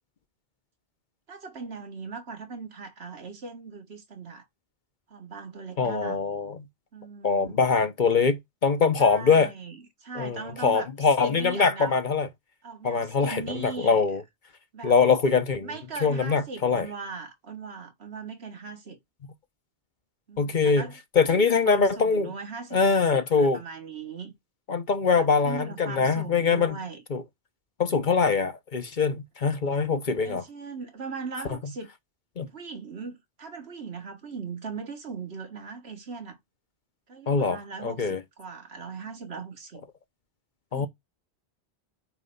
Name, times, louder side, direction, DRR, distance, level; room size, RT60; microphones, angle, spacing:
voice 1, 1.3-4.5 5.1-6.2 6.9-7.7 9.0-10.9 11.2-12.0 12.6-14.1 14.7-15.0 15.6-19.0 20.3-21.0 21.3-24.3 25.1-27.0 30.2-31.9 32.4-36.4 37.1-39.9 40.7-40.9, right 4 dB, 75° right, 1.8 m, -39 dB
voice 2, 5.8-6.6 7.2-9.5 10.2-12.3 12.8-14.2 14.8-15.7 16.0-16.9 20.4-20.9 21.2-22.3 22.7-23.6 24.7-26.8 27.1-27.2 27.8-30.4 32.4-32.5 37.3-38.2 40.7-40.9, left 5 dB, 50° left, 0.9 m, -23 dB
9.1 x 3.3 x 5.4 m
omnidirectional pair, 1.1 m